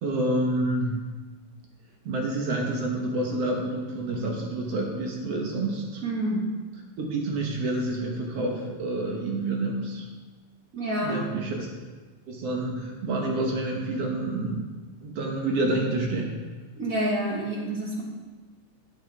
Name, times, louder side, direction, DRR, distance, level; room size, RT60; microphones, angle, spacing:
voice 1, 0.0-1.1 2.1-6.0 7.0-10.1 11.0-11.7 12.3-14.6 15.0-16.4, right 2 dB, 65° right, 0 dB, 1.9 m, -28 dB
voice 2, 6.0-6.5 10.7-11.2 16.8-18.0, right 1 dB, 40° right, -4 dB, 1.2 m, -28 dB
8.9 x 7.8 x 3.3 m, 1.3 s
omnidirectional pair, 3.4 m